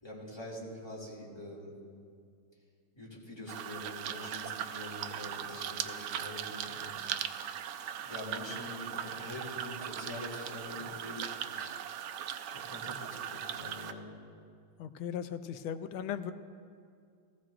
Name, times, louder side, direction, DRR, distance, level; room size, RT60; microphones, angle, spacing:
voice 1, 0.0-1.7 2.9-7.1 8.0-11.8 12.5-14.1, left 1 dB, 10° left, -5 dB, 2.4 m, -44 dB
sound 1, 3.5-13.9, right 9 dB, 80° right, 0.9 m, -39 dB
voice 2, 14.8-16.3, left 9 dB, 80° left, 9 dB, 1.4 m, -37 dB
18.5 x 15.0 x 2.5 m, 2.3 s
omnidirectional pair, 2.3 m